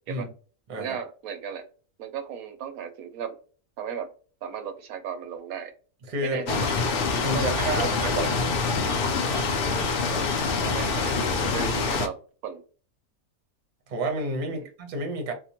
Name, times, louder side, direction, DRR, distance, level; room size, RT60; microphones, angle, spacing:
voice 1, 0.8-1.6 2.0-3.3 3.8-4.1 4.4-5.7 6.2-6.7 7.3-8.5 10.1-10.3 10.6-12.2 12.4-12.6 14.5-14.6, right 8 dB, 90° right, 8 dB, 1.1 m, -35 dB
voice 2, 6.0-6.5 7.2-8.4 13.9-15.3, right 1 dB, 45° right, 3 dB, 0.7 m, -30 dB
sound 1, 6.5-12.1, left 4 dB, 65° left, 0.6 m, -25 dB
2.8 x 2.1 x 2.8 m, 0.37 s
omnidirectional pair, 1.5 m